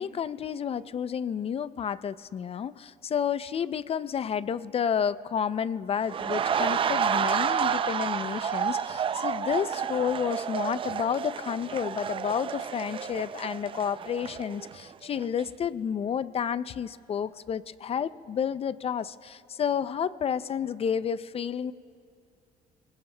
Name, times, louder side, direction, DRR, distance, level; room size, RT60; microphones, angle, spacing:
voice 1, 0.0-21.7, left 8 dB, 35° left, 15 dB, 0.4 m, -30 dB
sound 1, 6.1-14.9 15.2-15.4, right 7 dB, 30° right, 0.4 m, -30 dB
30.0 x 20.0 x 2.2 m, 2.4 s
cardioid pair, 110°, 17 cm